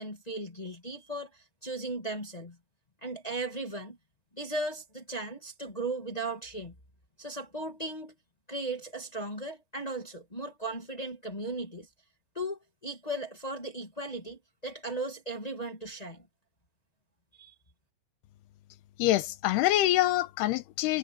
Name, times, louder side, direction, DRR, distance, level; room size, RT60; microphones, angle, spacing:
voice 1, 0.0-2.6 3.0-4.0 4.4-6.7 7.2-8.1 8.5-11.9 12.3-16.2 17.4-17.5, right 2 dB, 20° left, 1.0 m, -37 dB
voice 2, 19.0-21.0, left 15 dB, 85° left, 3.0 m, -25 dB
omnidirectional pair, 4.6 m